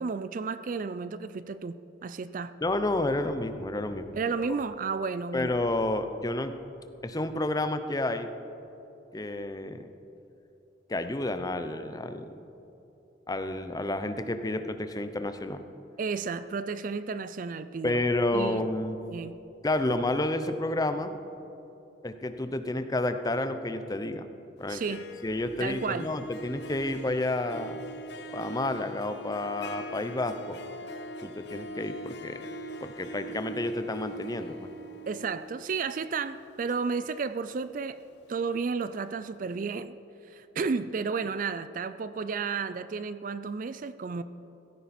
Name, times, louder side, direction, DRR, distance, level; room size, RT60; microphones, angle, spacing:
voice 1, 0.0-2.5 4.1-5.6 16.0-18.0 18.3-18.6 19.1-19.4 24.7-25.0 25.6-26.1 35.1-38.0 38.3-40.0 40.3-44.2, right 5 dB, 45° right, 14 dB, 0.4 m, -32 dB
voice 2, 2.6-4.2 4.5-4.6 5.3-6.5 7.0-8.3 9.1-9.9 10.9-12.4 13.3-15.6 17.8-19.0 19.6-21.2 22.0-24.3 24.6-24.8 25.2-27.8 28.3-30.6 31.2-32.4 32.8-34.7, left 2 dB, 20° left, 9 dB, 0.6 m, -30 dB
Harp, 24.6-38.6, equal, 60° left, 0.7 m, -43 dB
16.0 x 14.0 x 4.3 m, 2.9 s
head